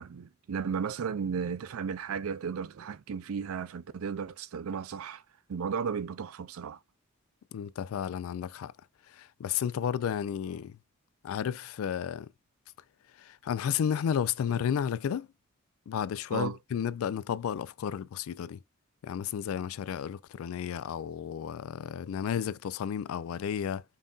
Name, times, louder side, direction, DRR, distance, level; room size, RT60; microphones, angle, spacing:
voice 1, 0.0-5.2 5.5-6.8 16.3-16.6, right 6 dB, 80° right, 0.4 m, -34 dB
voice 2, 7.5-8.7 9.1-10.8 11.2-12.3 13.2-15.3 15.9-18.6 19.0-23.8, left 8 dB, 80° left, 0.3 m, -32 dB
5.4 x 2.6 x 2.3 m
head